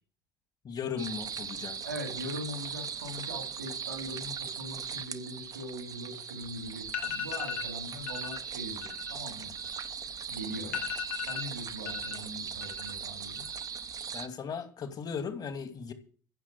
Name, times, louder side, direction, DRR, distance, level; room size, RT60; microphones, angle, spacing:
voice 1, 0.6-1.8 14.1-15.9, left 6 dB, 45° left, 2.6 m, -37 dB
sound 1, 1.0-14.3, right 7 dB, 40° right, 1.2 m, -39 dB
voice 2, 1.8-9.5 10.3-10.9 11.2-13.5, equal, 80° right, 4.2 m, -41 dB
sound 2, 6.4-6.5 6.8-7.7 8.1-8.4 8.7-10.1 10.4-10.5 10.7-12.2 12.5-13.1 13.4-13.9, left 9 dB, 75° left, 1.9 m, -37 dB
15.5 x 7.5 x 8.1 m
figure-of-eight pair, 50°, 10 cm